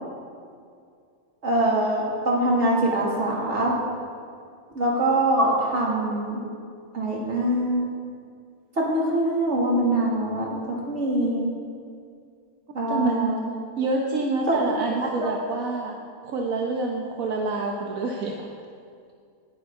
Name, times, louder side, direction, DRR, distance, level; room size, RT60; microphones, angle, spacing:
voice 1, 1.4-3.8 4.7-6.4 6.9-7.9 8.8-11.4 12.7-13.4 14.5-14.6 15.2-15.3, right 1 dB, 55° right, -4 dB, 2.7 m, -23 dB
voice 2, 12.9-13.3 13.8-16.0 16.2-18.5, right 3 dB, 80° right, 0 dB, 1.4 m, -27 dB
19.0 x 9.4 x 3.7 m, 2.3 s
omnidirectional pair, 1.5 m